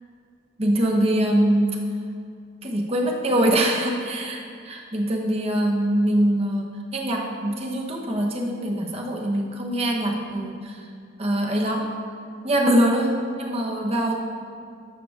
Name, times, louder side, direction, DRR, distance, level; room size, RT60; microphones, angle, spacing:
voice 1, 0.6-1.8 2.6-10.8 11.2-11.9 12.4-13.1 13.4-14.1, right 1 dB, 30° right, 0 dB, 1.1 m, -23 dB
12.5 x 6.8 x 3.5 m, 2.3 s
head